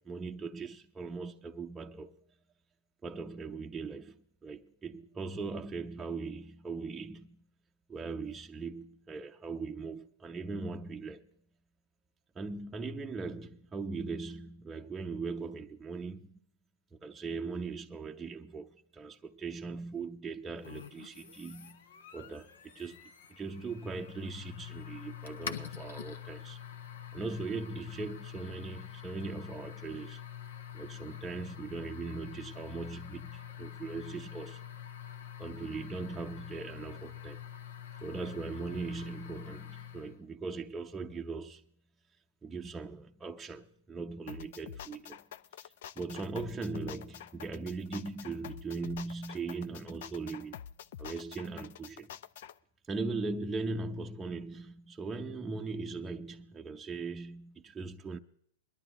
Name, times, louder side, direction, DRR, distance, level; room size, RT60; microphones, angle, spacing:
voice 1, 0.0-2.2 3.0-7.4 7.9-11.3 12.4-16.4 17.0-21.8 22.1-26.6 27.1-30.2 30.7-34.6 35.4-37.4 38.0-41.6 42.4-45.2 45.6-50.6 51.0-52.1 52.9-58.2, right 4 dB, 10° right, 0.7 m, -39 dB
sound 1, 20.6-40.2, left 9 dB, 80° left, 1.2 m, -46 dB
sound 2, 44.3-52.5, left 9 dB, 65° left, 0.6 m, -47 dB
22.0 x 12.0 x 3.0 m
hypercardioid pair, 135°, 0 cm